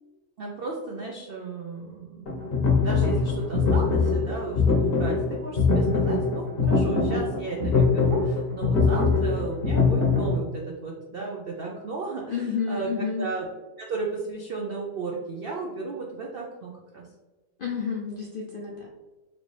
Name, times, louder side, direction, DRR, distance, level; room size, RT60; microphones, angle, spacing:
voice 1, 0.4-13.5 13.8-17.1, right 4 dB, 75° right, -1 dB, 0.5 m, -34 dB
sound 1, 2.3-10.4, left 4 dB, 45° left, 0.9 m, -23 dB
voice 2, 12.3-13.3 17.6-18.9, left 6 dB, 65° left, -2 dB, 0.5 m, -30 dB
4.7 x 2.6 x 3.3 m, 1.1 s
omnidirectional pair, 1.7 m